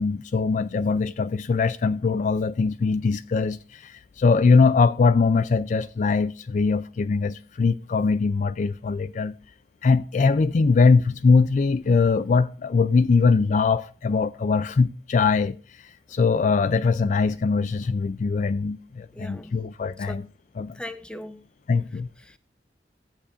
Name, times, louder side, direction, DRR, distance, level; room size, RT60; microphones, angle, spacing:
voice 1, 0.0-9.3 9.8-20.2 20.6-20.7 21.7-22.1, left 4 dB, 45° left, 0.3 m, -22 dB
voice 2, 19.1-19.6 20.1-20.3 20.7-21.4 22.2-22.4, left 1 dB, 5° left, 0.8 m, -38 dB
14.5 x 8.4 x 2.5 m
head